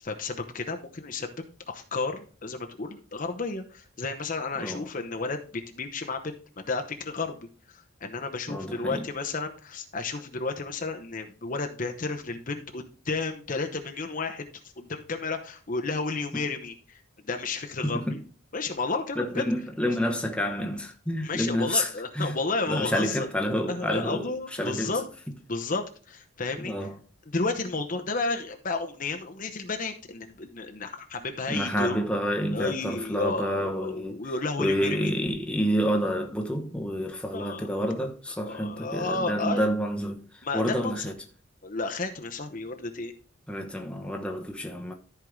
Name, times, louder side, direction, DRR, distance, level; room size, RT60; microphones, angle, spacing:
voice 1, 0.0-7.4 7.7-14.5 14.8-17.0 17.3-18.2 18.5-19.5 21.2-23.3 23.7-25.1 25.5-26.7 27.3-32.0 32.5-35.1 37.3-37.7 38.5-39.7 40.4-41.1 41.6-43.1, left 3 dB, 40° left, 0.9 m, -32 dB
voice 2, 4.6-4.9 8.5-9.1 16.3-16.5 17.8-18.2 19.2-22.4 22.7-25.0 26.6-27.0 31.5-34.3 34.6-41.2 43.5-44.9, equal, 5° left, 1.0 m, -29 dB
14.0 x 4.7 x 3.7 m
head